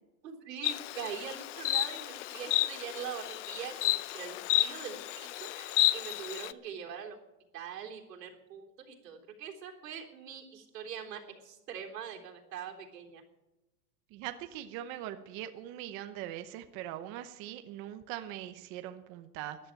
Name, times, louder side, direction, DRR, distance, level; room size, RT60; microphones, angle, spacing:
voice 1, 0.2-7.2 7.5-13.2, right 7 dB, 85° right, 1 dB, 3.6 m, -43 dB
Insect, 0.6-6.5, left 15 dB, 50° left, 0.6 m, -32 dB
voice 2, 14.1-19.6, right 12 dB, 25° right, 9 dB, 0.7 m, -41 dB
14.0 x 11.0 x 8.8 m, 1.0 s
supercardioid pair, 155°, 48 cm